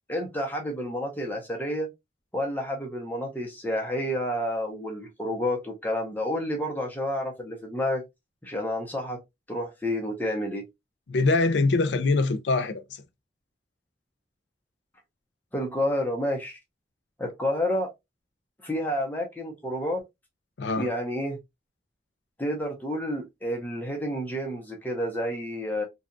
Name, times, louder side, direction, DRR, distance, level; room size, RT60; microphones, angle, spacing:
voice 1, 0.1-1.9 2.3-8.0 8.4-9.2 9.5-10.6 15.5-16.5 17.2-17.9 18.6-20.0 20.8-21.4 22.4-25.9, equal, 10° left, 0.6 m, -29 dB
voice 2, 11.1-13.0 20.6-20.9, left 3 dB, 90° left, 0.5 m, -24 dB
2.8 x 2.3 x 2.5 m
head